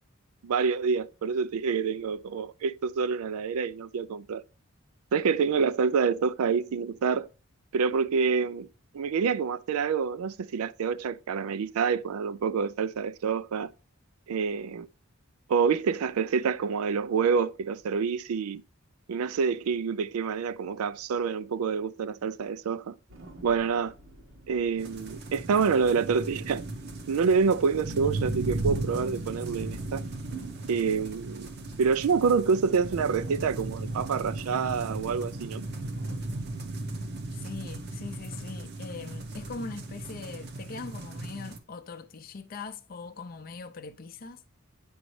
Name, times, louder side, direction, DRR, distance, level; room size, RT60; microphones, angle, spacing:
voice 1, 0.4-4.4 5.1-7.3 7.7-8.7 8.9-13.7 14.3-14.9 15.5-18.6 19.1-23.0 23.4-23.9 24.5-26.6 27.1-30.0 30.7-31.5 31.8-35.7, right 5 dB, 85° right, 0.4 m, -27 dB
sound 1, 23.1-36.6, right 2 dB, 70° right, 1.1 m, -49 dB
sound 2, 24.8-41.6, right 2 dB, 50° right, 0.8 m, -36 dB
voice 2, 37.3-44.4, left 4 dB, 40° left, 0.4 m, -41 dB
8.7 x 5.1 x 3.1 m
head